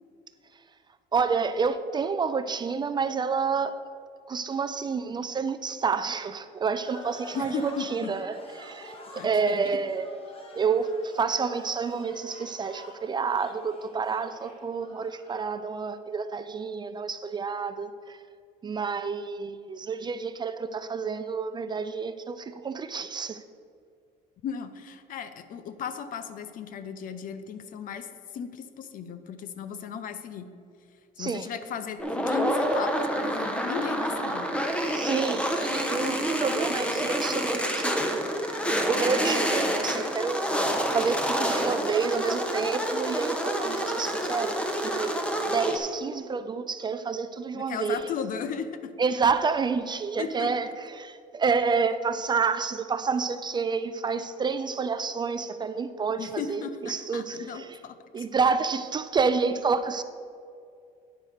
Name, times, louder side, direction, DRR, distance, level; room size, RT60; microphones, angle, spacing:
voice 1, 1.1-3.8 4.3-10.1 10.5-18.2 18.6-23.4 31.2-31.4 34.9-38.6 38.9-44.5 44.8-45.1 45.5-48.0 49.0-57.8 58.1-60.0, right 5 dB, 25° right, 11 dB, 0.4 m, -29 dB
sound 1, 6.8-15.5, left 2 dB, 35° left, 1.5 m, -47 dB
voice 2, 7.3-8.1 9.2-9.8 24.4-30.5 31.2-34.5 47.5-48.9 50.2-50.5 56.2-58.3, left 7 dB, 55° left, 11 dB, 0.7 m, -36 dB
sound 2, 32.0-45.8, equal, 5° left, 1.1 m, -28 dB
9.1 x 5.3 x 6.6 m, 2.3 s
cardioid pair, 115°, 17 cm